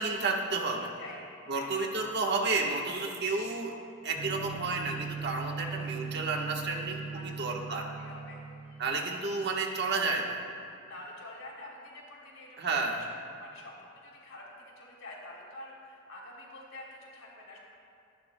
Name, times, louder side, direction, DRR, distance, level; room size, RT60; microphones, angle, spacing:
voice 1, 0.0-0.9 1.5-3.7 4.0-7.8 8.8-10.4 12.6-13.0, right 3 dB, 50° right, 0 dB, 1.3 m, -31 dB
voice 2, 0.8-1.8 5.6-5.7 7.1-8.9 10.8-13.1 13.4-17.6, left 1 dB, 80° left, -3 dB, 3.3 m, -47 dB
sound 1, 4.2-9.0, right 5 dB, 35° right, 2.9 m, -40 dB
24.5 x 11.5 x 2.2 m, 2.5 s
head